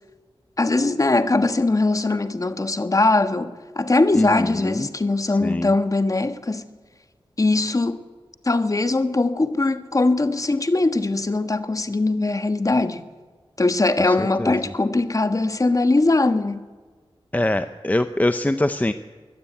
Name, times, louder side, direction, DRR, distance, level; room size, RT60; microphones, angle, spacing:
voice 1, 0.6-6.7 7.4-8.0 8.4-13.0 13.6-16.6, left 2 dB, 35° left, 1.4 m, -21 dB
voice 2, 4.1-4.9 5.4-5.7 14.2-14.5 17.3-18.9, left 1 dB, 15° left, 0.7 m, -23 dB
23.0 x 14.5 x 9.2 m
wide cardioid pair, 100°, 10 cm